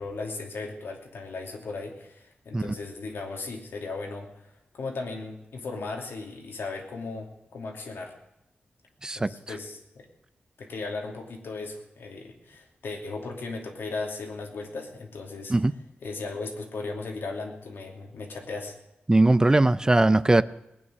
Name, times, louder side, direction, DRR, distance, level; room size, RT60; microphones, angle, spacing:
voice 1, 0.0-4.5 4.7-8.1 9.1-10.1 10.6-15.5 16.0-18.7, left 3 dB, 90° left, 2 dB, 2.8 m, -36 dB
voice 2, 19.1-20.4, right 2 dB, 20° right, 16 dB, 0.5 m, -20 dB
19.5 x 9.5 x 6.3 m, 0.88 s
wide cardioid pair, 100°, 4 cm